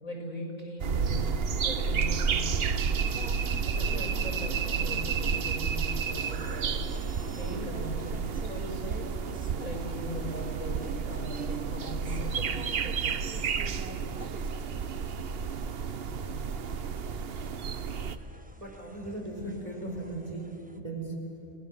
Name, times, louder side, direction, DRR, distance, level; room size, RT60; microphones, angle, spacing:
voice 1, 0.0-3.0 3.6-6.7 7.3-9.0 9.6-10.8 11.0-13.2, left 1 dB, 80° left, 1 dB, 6.9 m, -40 dB
sound 1, 0.8-18.2, right 6 dB, 50° right, 0.9 m, -31 dB
sound 2, 3.0-20.8, right 1 dB, 5° right, 1.0 m, -48 dB
voice 2, 18.6-20.5 20.7-21.1, right 2 dB, 25° right, 0 dB, 4.2 m, -37 dB
29.5 x 18.5 x 7.6 m, 2.7 s
omnidirectional pair, 1.4 m